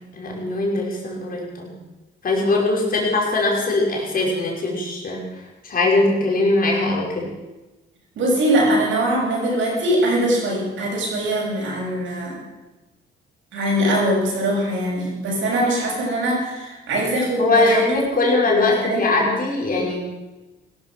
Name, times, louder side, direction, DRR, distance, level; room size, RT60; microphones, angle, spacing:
voice 1, 0.1-1.7 2.2-7.3 17.4-20.0, left 2 dB, 45° left, -2 dB, 5.4 m, -21 dB
voice 2, 8.2-12.4 13.5-17.9 18.5-19.3, right 1 dB, 75° right, -2 dB, 7.3 m, -22 dB
17.0 x 13.0 x 6.2 m, 1.1 s
cardioid pair, 90°, 20 cm